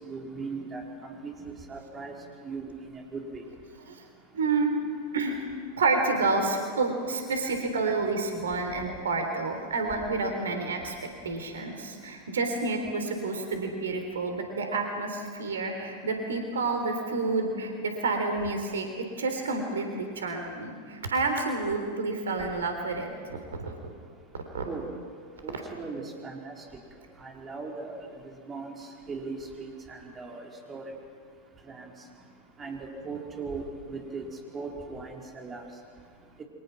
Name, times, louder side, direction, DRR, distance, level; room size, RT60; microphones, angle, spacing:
voice 1, 0.0-0.8 1.2-2.1 2.4-3.4 24.7-24.9 25.4-26.5 27.2-27.9 28.5-30.8 31.7-31.9 32.6-33.6 33.9-34.3 34.5-35.6, right 4 dB, 20° right, 0 dB, 4.4 m, -38 dB
voice 2, 4.3-4.9 5.1-5.4 5.8-10.9 11.2-18.9 19.2-23.7 24.5-24.6, right 3 dB, 65° right, 4 dB, 3.6 m, -29 dB
29.5 x 24.0 x 6.1 m, 2.1 s
figure-of-eight pair, 90°, 0 cm